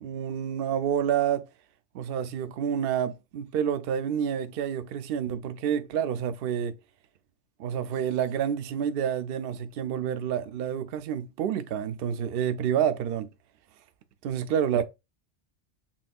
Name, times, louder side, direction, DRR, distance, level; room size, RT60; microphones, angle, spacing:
voice 1, 0.0-1.4 1.9-6.7 7.6-13.3 14.2-14.8, right 9 dB, 65° right, 0.7 m, -28 dB
5.8 x 2.6 x 2.3 m
omnidirectional pair, 1.2 m